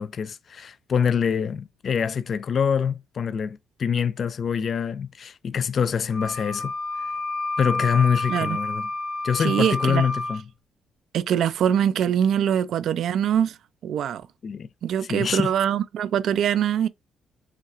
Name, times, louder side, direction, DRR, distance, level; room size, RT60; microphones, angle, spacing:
voice 1, 0.0-6.7 7.6-8.9 9.2-10.4 14.4-14.7 15.1-15.5, left 7 dB, 50° left, 0.4 m, -25 dB
Wind instrument woodwind instrument, 6.1-10.4, left 2 dB, 85° left, 1.2 m, -29 dB
voice 2, 9.4-10.0 11.1-13.6 13.8-14.2 14.8-16.9, right 9 dB, 70° right, 0.4 m, -23 dB
5.8 x 2.3 x 2.5 m
cardioid pair, 90°, 0 cm